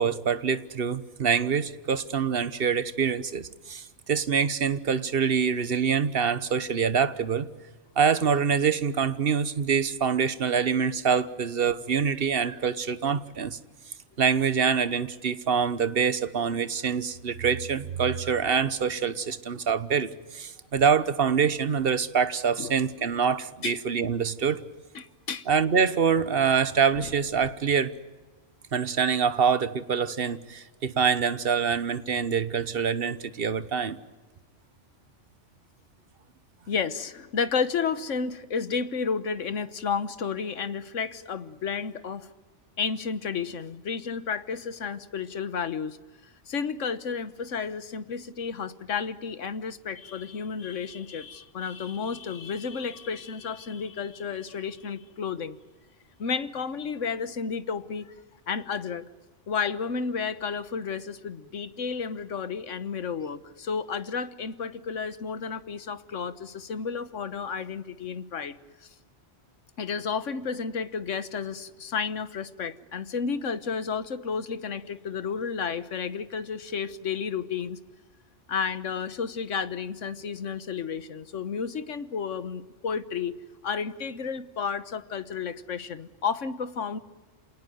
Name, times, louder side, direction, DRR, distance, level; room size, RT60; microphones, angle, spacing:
voice 1, 0.0-7.5 8.0-13.6 14.2-24.6 25.5-27.9 28.7-34.0, right 6 dB, 50° right, 14 dB, 1.2 m, -25 dB
voice 2, 24.9-25.5 36.7-42.3 42.8-46.0 46.5-55.6 56.2-58.1 58.5-59.1 59.5-68.6 69.8-77.8 78.5-83.3 83.6-87.0, left 6 dB, 90° left, 13 dB, 1.5 m, -32 dB
27.5 x 19.0 x 9.3 m, 1.3 s
omnidirectional pair, 1.2 m